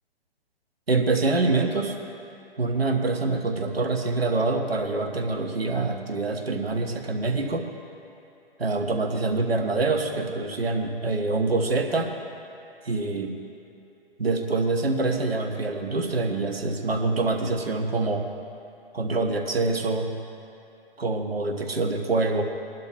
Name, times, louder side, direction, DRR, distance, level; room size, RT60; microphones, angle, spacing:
voice 1, 0.9-2.0 2.6-7.6 8.6-12.1 12.8-13.3 14.2-18.3 18.9-20.1 21.0-22.4, right 3 dB, 80° right, 4 dB, 1.3 m, -25 dB
22.0 x 12.0 x 2.2 m, 2.7 s
figure-of-eight pair, 135°, 30 cm